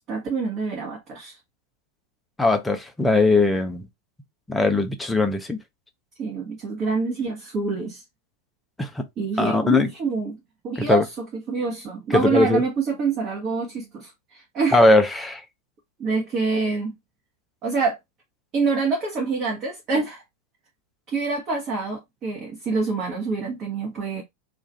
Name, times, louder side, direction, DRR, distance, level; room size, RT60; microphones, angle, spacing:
voice 1, 0.1-1.4 6.2-8.0 9.2-10.4 10.6-11.1 11.5-14.8 16.0-17.0 17.6-18.0 18.5-20.2 21.1-24.2, right 4 dB, 35° right, 0.9 m, -26 dB
voice 2, 2.4-3.8 4.5-5.6 8.8-9.1 9.4-9.9 10.8-11.0 12.1-12.6 14.7-15.4, left 2 dB, 5° left, 0.6 m, -19 dB
2.4 x 2.4 x 3.8 m
figure-of-eight pair, 90°, 0 cm